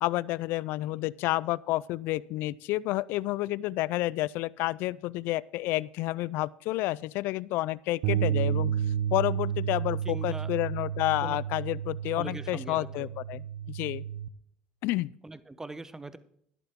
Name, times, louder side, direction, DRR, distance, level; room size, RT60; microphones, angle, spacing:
voice 1, 0.0-8.7 9.1-14.0 14.8-15.1, left 18 dB, 70° left, 21 dB, 0.3 m, -30 dB
sound 1, 8.0-14.3, right 10 dB, 80° right, 0.7 m, -31 dB
voice 2, 10.0-10.5 11.2-11.4 12.1-13.1 15.2-16.2, right 2 dB, 15° right, 13 dB, 1.0 m, -41 dB
13.0 x 11.5 x 3.6 m, 0.68 s
supercardioid pair, 90°, 4 cm